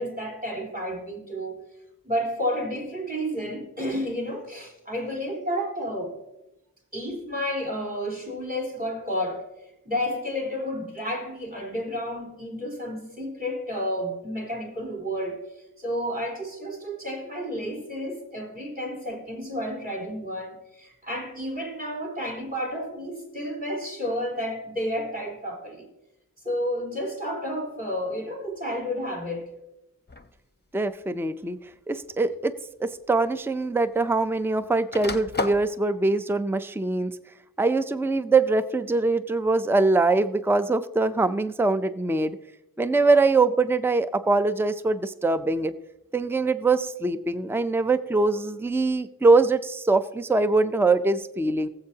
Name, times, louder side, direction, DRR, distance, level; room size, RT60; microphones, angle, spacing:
voice 1, 0.0-1.6 2.0-6.1 6.9-9.5 9.8-15.4 15.8-25.9 26.4-29.5, equal, 25° right, -2 dB, 4.2 m, -31 dB
sound 1, 30.1-30.4 31.4-31.5 32.9-33.0 33.3-34.4 34.7-35.7, left 3 dB, 30° left, 0.8 m, -32 dB
voice 2, 30.7-31.6 31.9-32.5 32.8-37.1 37.6-42.4 42.8-45.7 46.1-51.7, right 3 dB, 5° right, 12 dB, 0.5 m, -23 dB
20.0 x 7.8 x 2.8 m, 0.89 s
wide cardioid pair, 45°, 35 cm